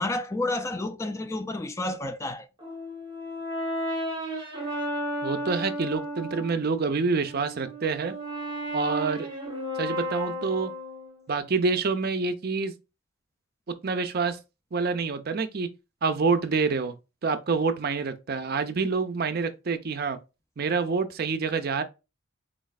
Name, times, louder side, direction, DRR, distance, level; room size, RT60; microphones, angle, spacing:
voice 1, 0.0-2.5, left 2 dB, 15° left, 0.3 m, -30 dB
Brass instrument, 2.6-6.6 7.1-11.2, equal, 25° right, 1.1 m, -33 dB
voice 2, 5.2-8.1 8.7-9.3 9.8-10.7 11.3-12.7 13.8-14.4 14.7-15.7 16.0-16.9 17.2-20.2 20.6-21.8, right 4 dB, 50° right, 0.5 m, -27 dB
4.6 x 3.1 x 2.3 m
head